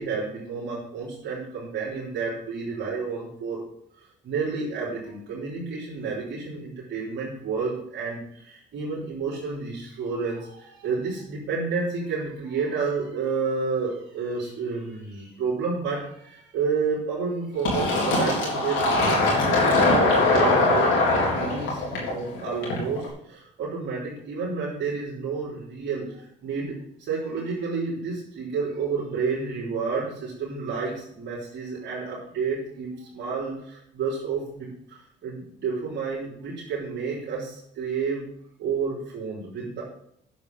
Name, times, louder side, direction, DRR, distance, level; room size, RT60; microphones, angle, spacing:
voice 1, 0.0-3.6 4.0-20.9 21.3-38.2 38.6-39.8, right 5 dB, 65° right, -7 dB, 3.7 m, -30 dB
Fill (with liquid), 17.6-23.0, left 2 dB, 80° left, 4.2 m, -21 dB
9.5 x 7.4 x 5.4 m, 0.71 s
cardioid pair, 75°, 20 cm